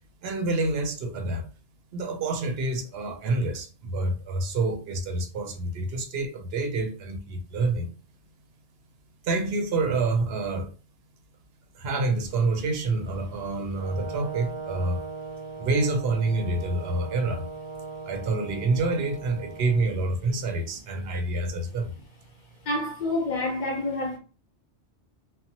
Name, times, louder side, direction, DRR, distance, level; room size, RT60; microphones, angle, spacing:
voice 1, 0.2-1.5 1.9-7.9 9.2-10.7 11.7-15.0 15.6-17.5 18.1-21.9, right 3 dB, 70° right, 0.7 m, -27 dB
Brass instrument, 13.8-19.9, right 4 dB, 50° right, 0.3 m, -39 dB
voice 2, 22.6-24.2, left 2 dB, 45° left, 0.9 m, -28 dB
2.6 x 2.1 x 2.7 m
omnidirectional pair, 1.1 m